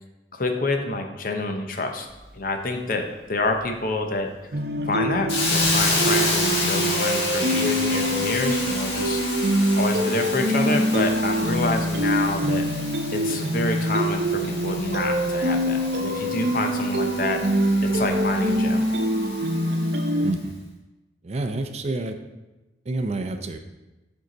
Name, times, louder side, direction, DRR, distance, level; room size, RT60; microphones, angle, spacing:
voice 1, 0.3-2.1 2.3-4.3 4.9-9.2 9.8-12.6 13.1-17.4 17.8-18.8, left 2 dB, 50° left, 4 dB, 0.8 m, -27 dB
sound 1, 4.5-20.3, equal, 65° right, 0.7 m, -24 dB
Hiss, 5.3-20.1, left 2 dB, 75° left, 1.6 m, -30 dB
voice 2, 20.2-20.6 21.2-22.2 22.8-23.6, right 2 dB, 35° right, 7 dB, 0.5 m, -28 dB
7.9 x 4.6 x 3.9 m, 1.1 s
head